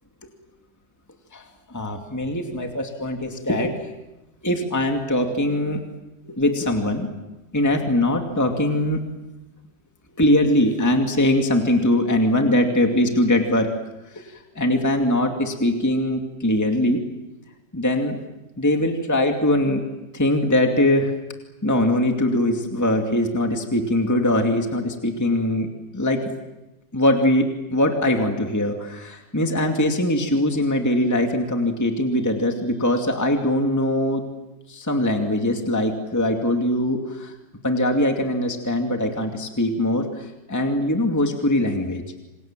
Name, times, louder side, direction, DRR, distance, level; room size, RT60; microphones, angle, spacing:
voice 1, 1.3-3.8 4.4-5.8 6.2-7.1 7.5-9.0 10.1-13.7 14.2-17.1 17.7-18.2 18.6-19.8 20.1-21.1 21.6-25.7 25.9-26.3 26.9-34.2 34.7-37.3 37.6-42.0, left 1 dB, 10° left, 3 dB, 2.3 m, -22 dB
28.0 x 27.0 x 7.5 m, 1.0 s
omnidirectional pair, 2.1 m